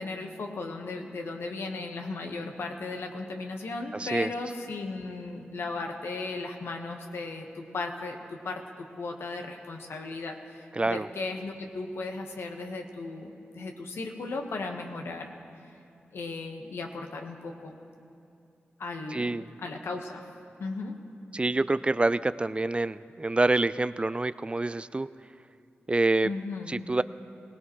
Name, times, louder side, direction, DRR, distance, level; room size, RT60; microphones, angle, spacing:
voice 1, 0.0-15.3 16.1-17.8 18.8-20.3 20.6-20.9 26.2-26.8, left 3 dB, 80° left, 3 dB, 1.2 m, -36 dB
voice 2, 3.9-4.3 10.7-11.1 19.1-19.5 21.3-25.1 25.9-26.3 26.7-27.0, right 2 dB, 25° right, 15 dB, 0.3 m, -26 dB
21.0 x 17.5 x 3.1 m, 2.6 s
cardioid pair, 50°, 4 cm